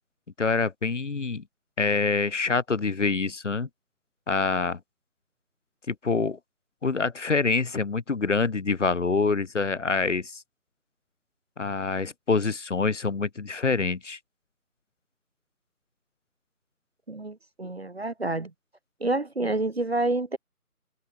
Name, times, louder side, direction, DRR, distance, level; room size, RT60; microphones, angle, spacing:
voice 1, 0.4-1.4 1.8-3.7 4.3-4.8 5.9-6.4 6.8-10.4 11.6-14.2, left 4 dB, 50° left, 1.1 m, -26 dB
voice 2, 17.1-18.5 19.0-20.4, right 2 dB, 45° right, 0.6 m, -28 dB
open air
figure-of-eight pair, 160°, 45 cm